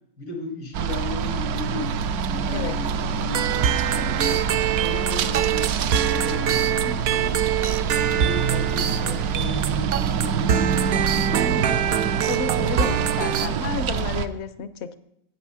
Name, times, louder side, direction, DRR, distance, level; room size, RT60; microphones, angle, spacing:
voice 1, 0.2-4.4 4.8-7.4 7.8-11.8, left 2 dB, 90° left, 1 dB, 2.4 m, -35 dB
sound 1, 0.7-14.3, right 6 dB, 85° right, 1.1 m, -26 dB
sound 2, 3.3-13.5, right 9 dB, 65° right, 0.6 m, -25 dB
voice 2, 12.3-15.0, left 6 dB, 60° left, 12 dB, 0.8 m, -31 dB
8.3 x 8.1 x 5.6 m, 0.77 s
omnidirectional pair, 1.6 m